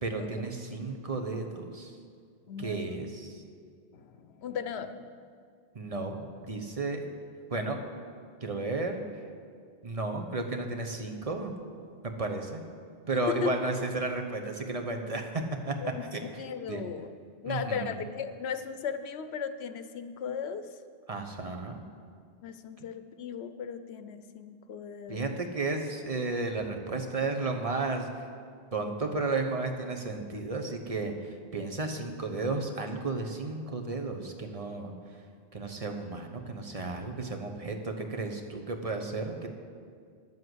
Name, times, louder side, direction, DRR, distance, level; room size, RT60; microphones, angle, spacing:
voice 1, 0.0-1.9 2.6-3.4 5.7-6.2 6.4-7.0 7.5-7.8 8.4-9.0 9.8-11.5 12.2-12.6 13.1-15.3 15.6-16.4 16.7-16.8 17.5-17.9 21.1-21.8 25.1-28.1 28.7-31.1 31.5-34.9 35.5-39.5, right 3 dB, 35° right, 4 dB, 1.0 m, -33 dB
voice 2, 2.5-3.0 3.9-5.1 13.3-13.5 15.8-16.0 16.4-17.1 17.4-20.7 22.4-25.3, left 7 dB, 80° left, 10 dB, 1.0 m, -36 dB
11.0 x 7.6 x 7.9 m, 2.1 s
omnidirectional pair, 1.1 m